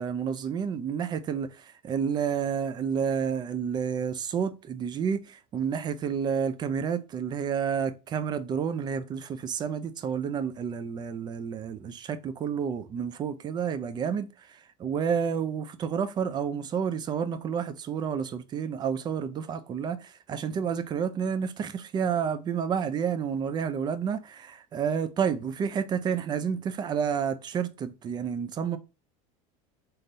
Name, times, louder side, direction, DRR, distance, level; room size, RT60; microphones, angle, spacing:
voice 1, 0.0-1.5 1.8-14.3 14.8-28.8, right 7 dB, 25° right, 0.4 m, -30 dB
3.9 x 3.8 x 2.5 m
cardioid pair, 155°, 18 cm